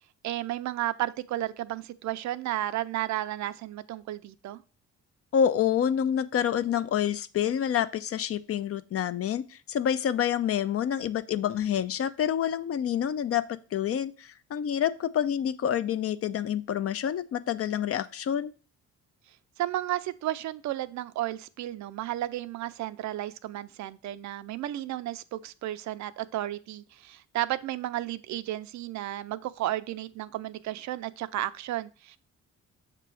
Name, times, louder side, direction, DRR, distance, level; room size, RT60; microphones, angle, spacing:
voice 1, 0.2-4.6 19.6-32.2, right 14 dB, 70° right, 0.5 m, -33 dB
voice 2, 5.3-13.5 13.7-18.5, left 9 dB, 50° left, 0.5 m, -27 dB
6.8 x 3.0 x 4.7 m
cardioid pair, 90°, 30 cm